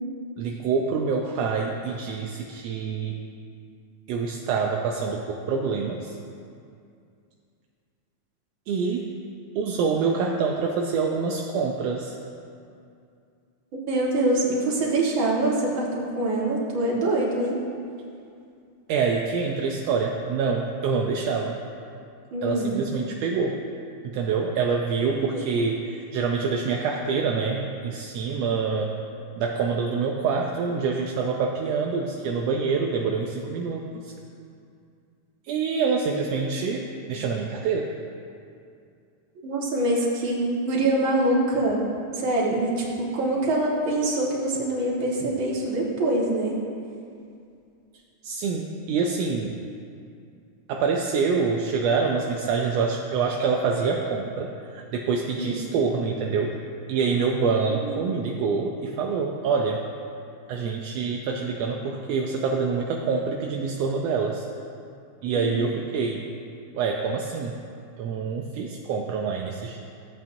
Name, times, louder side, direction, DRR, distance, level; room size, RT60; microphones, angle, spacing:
voice 1, 0.4-3.2 4.1-6.1 8.7-9.1 9.5-12.1 18.9-21.6 22.4-23.6 24.0-28.9 29.4-34.1 35.5-37.9 48.2-49.6 50.7-56.6 56.9-59.8 60.5-64.5 65.2-66.2 66.7-67.6 68.0-69.8, right 5 dB, 80° right, 1 dB, 1.5 m, -26 dB
voice 2, 13.9-17.6 22.3-22.8 25.2-25.4 39.4-41.8 42.1-46.6 55.3-55.6 57.7-58.0 65.3-65.5, right 2 dB, 50° right, -4 dB, 1.9 m, -24 dB
15.0 x 8.3 x 2.6 m, 2.4 s
omnidirectional pair, 3.4 m